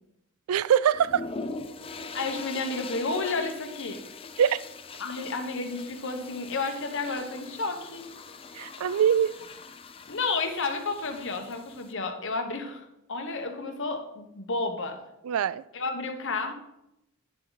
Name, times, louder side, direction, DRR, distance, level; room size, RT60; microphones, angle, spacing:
voice 1, 0.5-1.3 4.4-4.6 8.5-9.3 15.2-15.6, right 8 dB, 85° right, 0.3 m, -23 dB
sound 1, 0.9-11.9, left 4 dB, 25° left, 0.5 m, -42 dB
voice 2, 2.1-4.0 5.0-8.1 8.7-8.8 10.1-15.0 15.7-16.5, left 3 dB, 60° left, 1.2 m, -31 dB
9.9 x 7.1 x 4.1 m
head